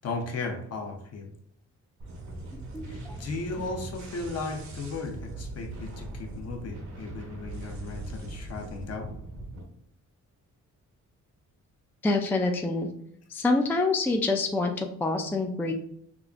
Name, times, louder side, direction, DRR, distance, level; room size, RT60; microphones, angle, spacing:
voice 1, 0.0-1.3 2.9-9.1, left 3 dB, 55° left, 3 dB, 0.8 m, -36 dB
sound 1, 2.0-9.6, right 2 dB, 65° right, 0.9 m, -40 dB
voice 2, 2.5-3.2 12.0-12.9 13.3-15.7, left 3 dB, 5° left, 2 dB, 0.3 m, -27 dB
4.9 x 2.3 x 2.4 m, 0.68 s
cardioid pair, 100°, 31 cm